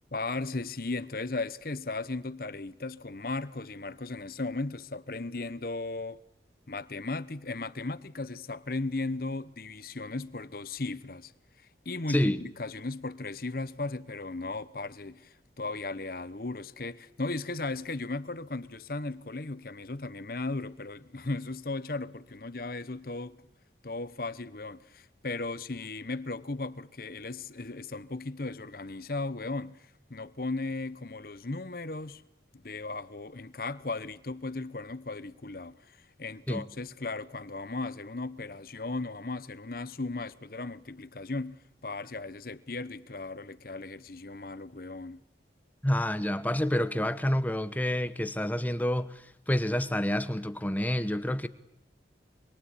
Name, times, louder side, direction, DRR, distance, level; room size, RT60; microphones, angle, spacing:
voice 1, 0.1-6.2 6.7-11.3 11.8-23.4 23.8-32.2 32.5-45.2, left 3 dB, 50° left, 1.0 m, -36 dB
voice 2, 12.1-12.4 36.5-36.7 45.8-51.5, left 1 dB, 10° left, 0.9 m, -28 dB
25.5 x 23.0 x 8.6 m
head